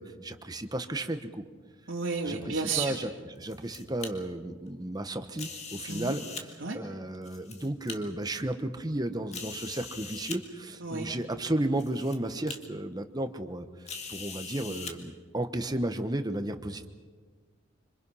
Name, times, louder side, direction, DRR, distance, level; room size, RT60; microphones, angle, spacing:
voice 1, 0.0-1.4 2.2-3.1 3.4-13.6 14.1-16.9, right 1 dB, 20° right, 8 dB, 1.1 m, -33 dB
voice 2, 1.9-3.0 5.9-6.2 6.6-6.8 10.8-11.1, right 4 dB, 75° right, -4 dB, 2.3 m, -32 dB
sound 1, 3.2-4.1 5.3-6.4 7.1-8.0 8.6-8.7 9.3-10.4 11.3-11.4 11.8-12.2 12.5-12.6 13.9-14.9, left 5 dB, 35° left, 2.0 m, -41 dB
26.0 x 26.0 x 5.7 m, 1.5 s
head